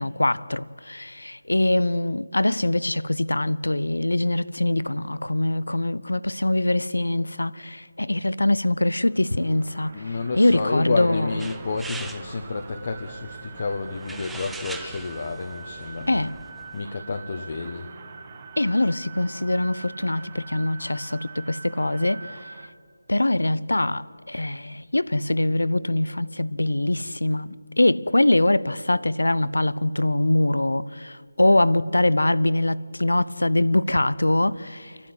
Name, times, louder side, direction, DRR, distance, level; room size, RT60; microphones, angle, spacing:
voice 1, 0.0-11.4 16.1-16.4 18.6-22.3 23.1-35.0, left 1 dB, 80° left, 0.7 m, -23 dB
sound 1, 9.0-22.7, right 5 dB, 30° right, 1.3 m, -44 dB
voice 2, 9.9-16.3 16.7-17.9, left 4 dB, 40° left, 1.2 m, -30 dB
sound 2, 11.4-16.8, right 3 dB, 5° right, 0.6 m, -42 dB
28.5 x 12.0 x 9.6 m
figure-of-eight pair, 160°, 0 cm